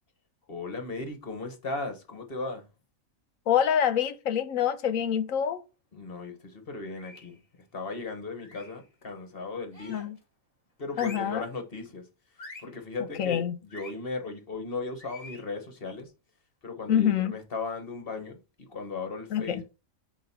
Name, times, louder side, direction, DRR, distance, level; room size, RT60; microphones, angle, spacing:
voice 1, 0.5-2.7 5.9-7.4 7.7-9.9 10.8-12.0 12.6-16.1 16.6-19.6, left 3 dB, 45° left, 1.3 m, -37 dB
voice 2, 3.5-5.6 9.9-10.2 11.0-11.4 13.2-13.5 16.9-17.3 19.3-19.6, left 9 dB, 75° left, 1.1 m, -26 dB
sound 1, 6.9-7.4 8.4-8.8 9.7-10.2 10.9-11.4 12.4-12.8 13.7-14.0 15.0-15.5, left 2 dB, 25° left, 1.4 m, -46 dB
7.5 x 2.9 x 5.6 m
omnidirectional pair, 1.4 m